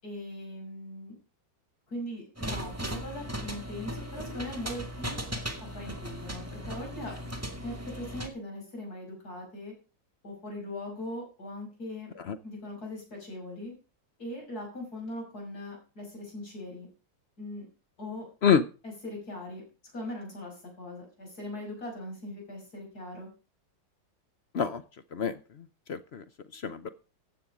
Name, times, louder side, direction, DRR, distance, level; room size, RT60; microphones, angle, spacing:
voice 1, 0.0-1.1 1.9-5.2 5.6-7.2 7.6-9.7 10.2-12.1 12.4-13.7 14.2-16.9 17.4-17.7 18.0-18.3 18.8-19.6 19.9-23.3, left 1 dB, 50° left, 0 dB, 6.8 m, -40 dB
sound 1, 2.4-8.3, equal, 10° right, 1.7 m, -37 dB
voice 2, 25.9-26.2 26.5-26.9, left 7 dB, 65° left, 13 dB, 0.6 m, -26 dB
15.0 x 8.6 x 5.1 m, 0.34 s
omnidirectional pair, 2.0 m